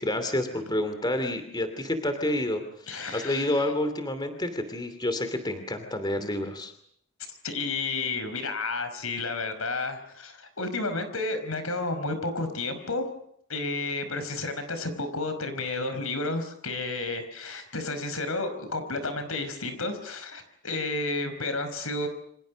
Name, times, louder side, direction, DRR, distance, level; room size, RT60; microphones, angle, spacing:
voice 1, 0.0-6.7, left 1 dB, 20° left, 8 dB, 2.8 m, -29 dB
voice 2, 2.9-3.5 7.3-13.0 13.5-22.1, left 3 dB, 80° left, 9 dB, 5.3 m, -31 dB
29.0 x 26.5 x 6.4 m, 0.68 s
head